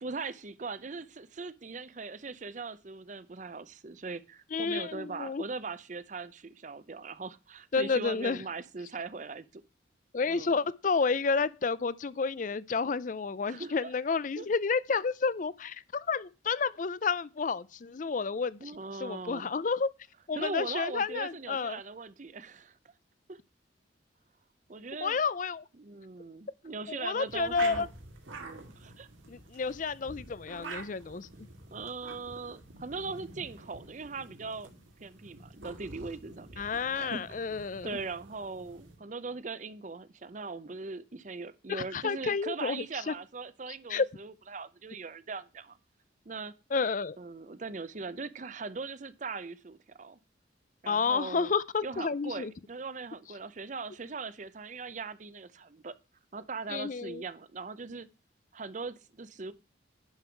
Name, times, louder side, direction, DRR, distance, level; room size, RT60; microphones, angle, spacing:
voice 1, 0.0-9.6 10.3-10.6 13.5-13.9 14.4-14.5 18.6-19.5 20.3-22.8 23.3-23.4 24.7-25.2 25.8-27.9 28.4-29.1 31.7-34.7 35.0-36.6 36.9-37.4 37.8-45.8 46.3-46.5 47.2-50.2 50.8-51.5 51.8-56.0 56.3-58.1 58.5-59.5, right 4 dB, 40° right, 0.6 m, -40 dB
voice 2, 4.5-5.4 7.7-8.4 10.1-18.7 19.0-19.9 20.3-21.8 25.0-25.6 26.9-27.9 29.3-31.3 36.6-38.0 41.7-43.1 43.9-44.1 46.7-47.2 50.9-52.5 56.7-57.2, left 5 dB, 40° left, 0.4 m, -30 dB
sound 1, 27.2-39.0, right 3 dB, 90° right, 2.4 m, -47 dB
11.0 x 5.5 x 4.5 m
head